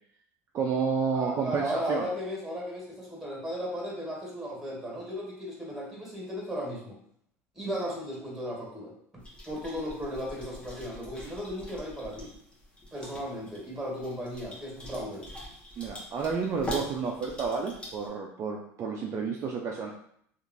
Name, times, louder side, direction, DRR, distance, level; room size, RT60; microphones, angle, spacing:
voice 1, 0.5-2.1 15.8-19.9, right 5 dB, 40° right, 0 dB, 0.4 m, -30 dB
voice 2, 1.1-7.0 7.5-12.3 12.9-15.3, equal, 5° right, -3 dB, 1.5 m, -36 dB
sound 1, 9.2-18.1, left 1 dB, 15° left, 0.8 m, -43 dB
2.9 x 2.4 x 2.5 m, 0.67 s
supercardioid pair, 95°, 7 cm